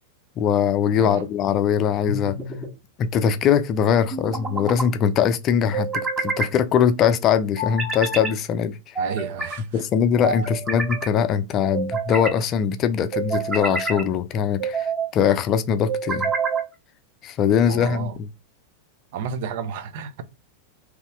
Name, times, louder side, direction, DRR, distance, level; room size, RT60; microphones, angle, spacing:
voice 1, 0.4-2.4 3.0-9.0 9.7-16.3 17.2-18.1, left 8 dB, 35° left, 0.5 m, -21 dB
voice 2, 0.9-1.3 9.0-9.9 17.7-18.2 19.1-20.2, right 7 dB, 50° right, 0.6 m, -32 dB
sound 1, 2.1-2.7 4.1-4.9 5.7-6.5 7.6-8.3 8.9-9.6 10.2-11.1 11.7-12.4 13.1-14.0 14.6-15.1 15.9-16.7, right 4 dB, 20° right, 1.6 m, -27 dB
4.0 x 3.0 x 3.5 m
figure-of-eight pair, 90°, 0 cm